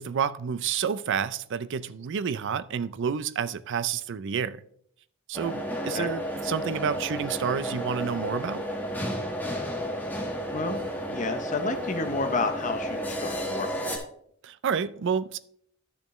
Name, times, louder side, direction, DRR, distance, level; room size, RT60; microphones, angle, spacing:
voice 1, 0.0-4.6 5.3-8.6 14.4-15.4, right 7 dB, 60° right, 0.4 m, -29 dB
sound 1, 5.3-14.0, equal, 10° left, 1.5 m, -32 dB
voice 2, 10.5-13.9, left 3 dB, 35° left, 0.7 m, -31 dB
12.0 x 6.9 x 3.1 m
head